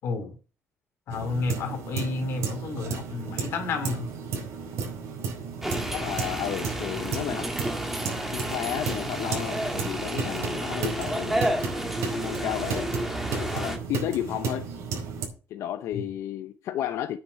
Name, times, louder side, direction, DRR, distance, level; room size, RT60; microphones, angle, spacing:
voice 1, 0.0-0.4 1.1-4.1 15.9-16.1, left 3 dB, 60° left, 2.8 m, -31 dB
water droppin from faucet, 1.1-15.3, right 5 dB, 75° right, 4.6 m, -34 dB
sound 1, 5.6-13.8, right 1 dB, 5° right, 1.7 m, -31 dB
voice 2, 5.9-7.5 8.3-11.4 12.1-12.9 13.3-14.7 15.5-17.2, left 12 dB, 80° left, 0.8 m, -32 dB
9.3 x 5.9 x 7.9 m
cardioid pair, 170°, 5 cm